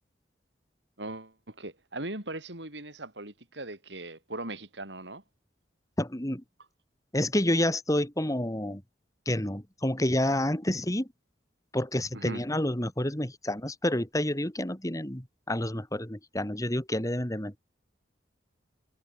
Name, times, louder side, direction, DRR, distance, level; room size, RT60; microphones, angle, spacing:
voice 1, 1.0-5.2 12.1-12.4, right 2 dB, 75° right, 7.1 m, -39 dB
voice 2, 6.0-6.4 7.1-8.8 9.3-11.1 11.7-17.6, left 1 dB, 20° left, 2.8 m, -29 dB
head